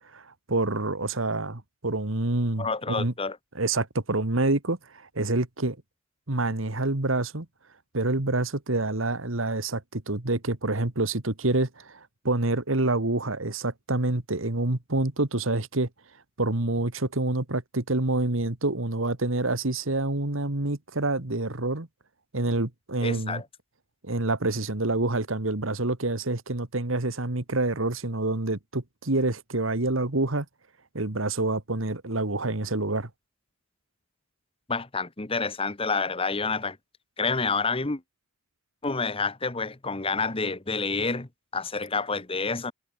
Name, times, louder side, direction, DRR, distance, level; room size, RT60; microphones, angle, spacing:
voice 1, 0.1-3.1 3.6-5.8 6.3-7.5 7.9-15.9 16.4-21.9 22.3-23.4 24.0-30.5 30.9-33.1, right 2 dB, 75° right, 2.1 m, -27 dB
voice 2, 2.6-3.4 23.0-23.4 34.7-36.8 37.2-38.0 38.8-42.7, left 4 dB, 30° left, 1.3 m, -28 dB
head